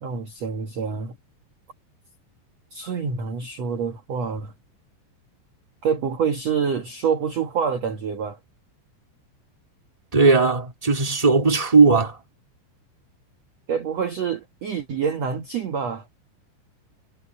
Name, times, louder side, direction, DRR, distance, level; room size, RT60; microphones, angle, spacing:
voice 1, 0.0-1.2 2.7-4.5 5.8-8.4 13.7-16.1, right 6 dB, 65° right, 1.7 m, -26 dB
voice 2, 10.1-12.2, right 4 dB, 10° right, 2.4 m, -17 dB
omnidirectional pair, 5.5 m